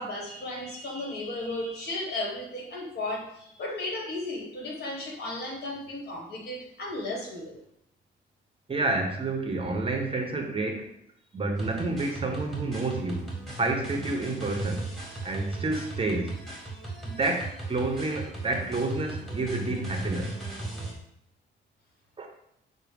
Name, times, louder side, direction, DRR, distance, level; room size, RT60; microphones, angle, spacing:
voice 1, 0.0-7.6, left 2 dB, 55° left, -1 dB, 1.4 m, -34 dB
voice 2, 8.7-10.9 11.3-14.9 15.2-16.3 17.0-20.4 22.2-22.3, right 2 dB, 30° right, 3 dB, 0.7 m, -29 dB
sound 1, 11.6-20.9, right 2 dB, ahead, 1.4 m, -37 dB
6.0 x 2.1 x 3.3 m, 0.76 s
cardioid pair, 90°, 20 cm